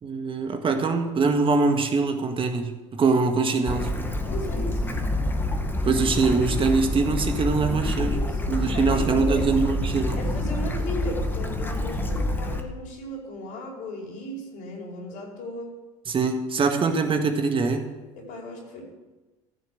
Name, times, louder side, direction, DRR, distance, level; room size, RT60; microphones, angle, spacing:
voice 1, 0.0-3.9 5.8-8.2 8.5-10.2 16.1-17.9, right 4 dB, 35° right, 5 dB, 1.7 m, -23 dB
Bird / Stream, 3.7-12.6, left 1 dB, 15° left, 1.9 m, -27 dB
voice 2, 4.2-4.9 8.1-9.7 10.2-15.7 18.1-18.9, left 1 dB, 60° left, 0 dB, 5.0 m, -36 dB
15.5 x 6.6 x 7.8 m, 1.2 s
hypercardioid pair, 75°, 16 cm